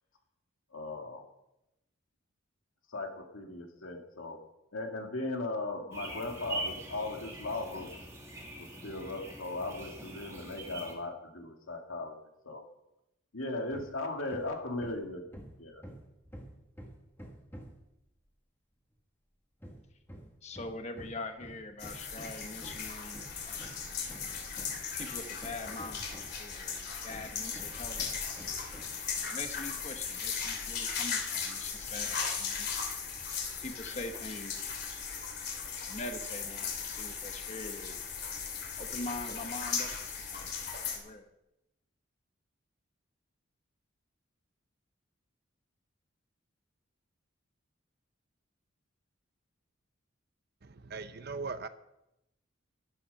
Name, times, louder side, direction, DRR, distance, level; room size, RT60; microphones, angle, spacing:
voice 1, 0.7-1.3 2.9-4.4 4.7-7.9 8.8-12.1 12.4-12.6 13.3-15.8, left 2 dB, 80° left, 3 dB, 2.4 m, -37 dB
sound 1, 5.9-10.9, right 2 dB, 15° right, 2.8 m, -43 dB
Hammer, 13.7-14.0 14.3-17.9 19.6-26.5 27.1-29.0, equal, 10° left, 1.8 m, -49 dB
voice 2, 20.4-23.7 25.0-28.0 29.3-32.8 33.6-34.7 35.8-38.0 38.8-41.3, left 2 dB, 35° left, 6 dB, 1.2 m, -43 dB
sound 2, 21.8-41.0, left 6 dB, 50° left, 3.0 m, -37 dB
voice 3, 50.6-51.7, right 4 dB, 50° right, 11 dB, 0.8 m, -39 dB
13.0 x 12.0 x 5.5 m, 0.88 s
head